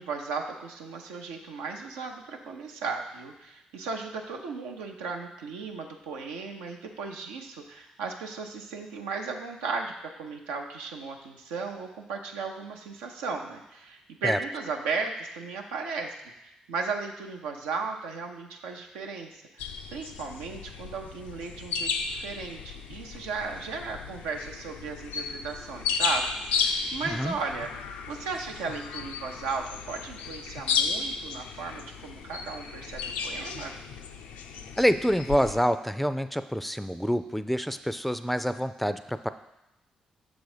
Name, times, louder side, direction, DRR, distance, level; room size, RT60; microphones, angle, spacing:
voice 1, 0.0-16.1 16.4-27.7 28.1-33.8, right 4 dB, 90° right, 2 dB, 0.6 m, -36 dB
sound 1, 19.6-35.6, left 5 dB, 85° left, 0.4 m, -34 dB
voice 2, 34.8-39.3, equal, 5° left, 11 dB, 0.4 m, -27 dB
6.3 x 4.0 x 4.9 m, 0.91 s
supercardioid pair, 50°, 3 cm